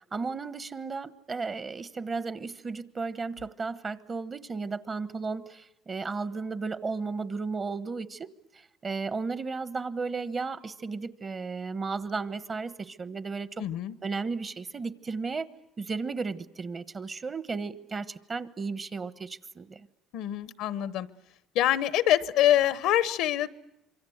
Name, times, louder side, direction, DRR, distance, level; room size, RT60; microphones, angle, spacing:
voice 1, 0.1-8.3 8.8-13.6 14.0-15.5 15.8-19.9, right 4 dB, 35° right, 14 dB, 1.1 m, -34 dB
voice 2, 13.6-13.9 20.1-21.1 21.5-23.5, left 12 dB, 75° left, 16 dB, 0.9 m, -25 dB
26.5 x 23.5 x 8.0 m, 0.88 s
supercardioid pair, 85°, 0 cm